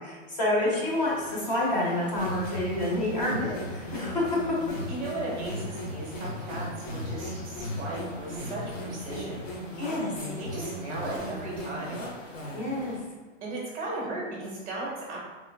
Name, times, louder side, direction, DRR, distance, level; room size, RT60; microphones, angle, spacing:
voice 1, 0.0-4.6 9.8-10.1 12.5-13.0, left 1 dB, 35° left, -4 dB, 0.8 m, -28 dB
sound 1, 0.8-13.0, left 1 dB, 60° left, 1.4 m, -46 dB
sound 2, 2.1-12.8, equal, 90° left, 1.0 m, -37 dB
voice 2, 4.9-9.5 10.0-12.1 13.4-15.2, right 2 dB, 10° right, -5 dB, 0.6 m, -36 dB
3.6 x 3.1 x 2.3 m, 1.4 s
hypercardioid pair, 170°, 38 cm